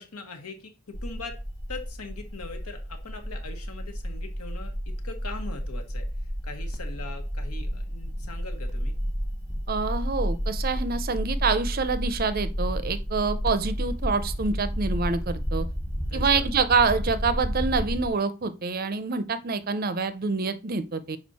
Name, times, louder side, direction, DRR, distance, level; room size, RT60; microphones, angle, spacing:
voice 1, 0.0-1.4 1.7-6.1 6.4-9.0 16.1-16.4, left 3 dB, 85° left, 1.4 m, -41 dB
sound 1, 0.9-18.1, equal, 15° left, 1.1 m, -31 dB
voice 2, 9.7-15.7 16.1-21.2, right 4 dB, 40° right, 0.5 m, -26 dB
6.2 x 5.0 x 4.2 m
head